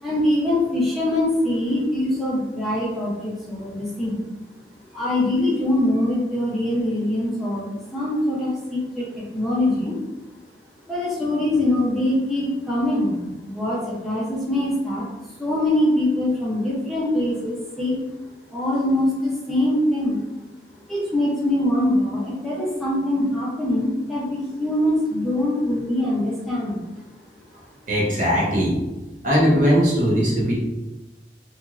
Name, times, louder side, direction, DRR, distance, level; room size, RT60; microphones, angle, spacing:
voice 1, 0.0-4.2 4.9-10.0 10.9-15.1 15.4-18.0 18.5-20.2 20.9-26.8, left 1 dB, ahead, -8 dB, 0.6 m, -23 dB
voice 2, 27.9-28.9 29.2-30.6, equal, 45° right, -4 dB, 0.8 m, -19 dB
2.9 x 2.5 x 2.4 m, 1.0 s
head